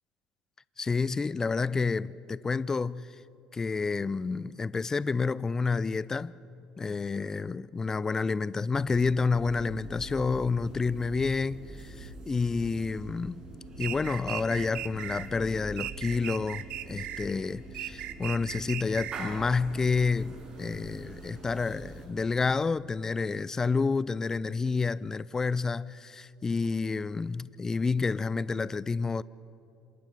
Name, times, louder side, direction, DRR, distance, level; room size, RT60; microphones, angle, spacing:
voice 1, 0.8-3.1 3.5-6.3 6.8-13.4 13.8-29.2, left 4 dB, 25° left, 0.5 m, -29 dB
sound 1, 8.8-22.1, right 2 dB, 35° right, 7.3 m, -44 dB
sound 2, 13.8-15.3 15.8-17.3 17.7-19.4, right 13 dB, 55° right, 1.0 m, -37 dB
27.0 x 26.5 x 5.3 m
hypercardioid pair, 65°, 2 cm